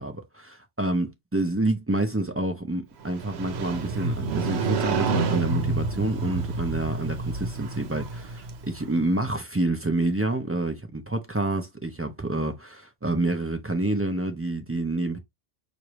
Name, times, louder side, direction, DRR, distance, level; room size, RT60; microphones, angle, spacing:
voice 1, 0.0-15.2, right 2 dB, 20° right, 0.4 m, -28 dB
Motorcycle, 3.0-9.0, right 4 dB, 75° right, 1.0 m, -29 dB
4.7 x 2.6 x 2.9 m
omnidirectional pair, 1.1 m